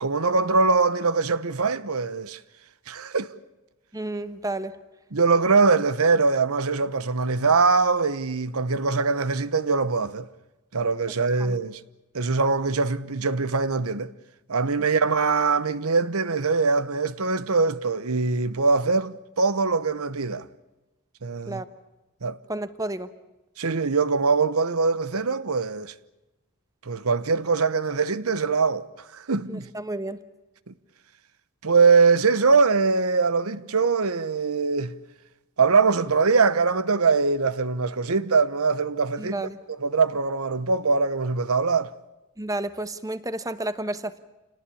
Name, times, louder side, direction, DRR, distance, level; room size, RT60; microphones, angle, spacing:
voice 1, 0.0-2.4 2.9-3.3 5.1-10.3 10.7-11.8 12.1-14.1 14.5-20.5 21.2-21.6 22.2-22.4 23.6-25.9 26.8-29.7 30.7-30.8 31.6-34.9 35.6-39.5 39.8-41.9, right 4 dB, 80° right, 1.0 m, -22 dB
voice 2, 3.9-4.8 11.4-11.6 21.5-21.6 22.5-23.1 29.5-30.2 39.2-39.6 42.4-44.2, right 1 dB, 15° right, 1.1 m, -31 dB
28.5 x 19.0 x 8.5 m
head